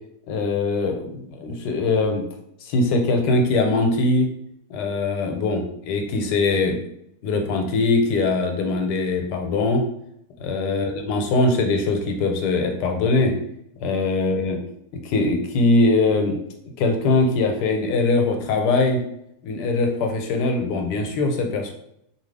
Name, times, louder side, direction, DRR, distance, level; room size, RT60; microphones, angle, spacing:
voice 1, 0.3-2.2 2.6-4.3 4.7-6.8 7.2-9.8 10.4-13.4 13.8-14.6 14.9-16.4 16.8-19.0 19.4-21.7, left 3 dB, 90° left, 4 dB, 1.2 m, -21 dB
2.9 x 2.3 x 3.2 m, 0.74 s
omnidirectional pair, 1.7 m